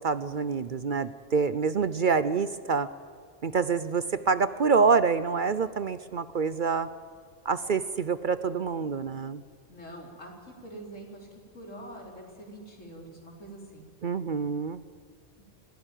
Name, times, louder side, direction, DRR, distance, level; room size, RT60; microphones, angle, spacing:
voice 1, 0.0-2.9 3.4-6.9 7.4-9.4 14.0-14.8, right 5 dB, 50° right, 14 dB, 0.7 m, -26 dB
voice 2, 9.7-13.9 15.4-15.5, right 1 dB, 85° left, 0 dB, 4.4 m, -45 dB
20.0 x 16.0 x 9.1 m, 2.1 s
omnidirectional pair, 1.3 m